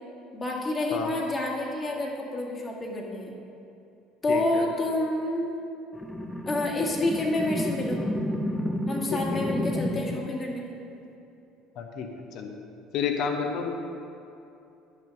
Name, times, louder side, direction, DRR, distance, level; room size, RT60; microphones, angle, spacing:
voice 1, 0.3-3.3 4.2-5.6 6.5-8.0 8.9-10.8, left 2 dB, 25° left, -3 dB, 2.0 m, -28 dB
voice 2, 4.3-4.6 9.1-9.4 11.8-12.5 12.9-13.7, left 6 dB, 55° left, 4 dB, 1.1 m, -30 dB
sound 1, 5.9-10.3, left 1 dB, 5° left, 0.9 m, -31 dB
10.5 x 6.6 x 5.3 m, 2.7 s
figure-of-eight pair, 60°, 0 cm